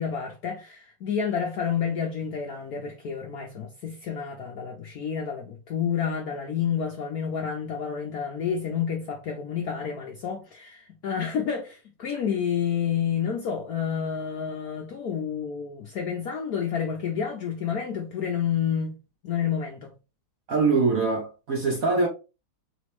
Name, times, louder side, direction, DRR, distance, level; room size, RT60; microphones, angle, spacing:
voice 1, 0.0-19.0 19.2-19.9, left 7 dB, 65° left, 0.9 m, -29 dB
voice 2, 20.5-22.1, right 4 dB, 60° right, 0.9 m, -23 dB
4.3 x 3.0 x 3.1 m
omnidirectional pair, 2.2 m